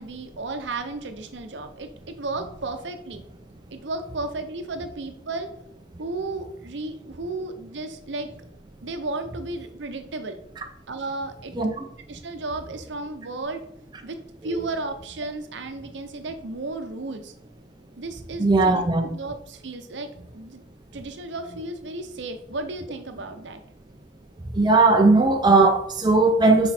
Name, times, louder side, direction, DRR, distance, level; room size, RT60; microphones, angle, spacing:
voice 1, 0.0-3.2 3.7-5.6 6.0-8.3 8.8-10.4 10.9-11.5 12.1-13.6 14.0-17.3 18.0-20.6 20.9-23.6, right 2 dB, 70° right, 7 dB, 0.7 m, -34 dB
voice 2, 11.6-11.9 18.4-19.1 24.5-26.7, right 3 dB, 20° right, 3 dB, 0.5 m, -18 dB
6.1 x 4.4 x 4.3 m, 0.73 s
head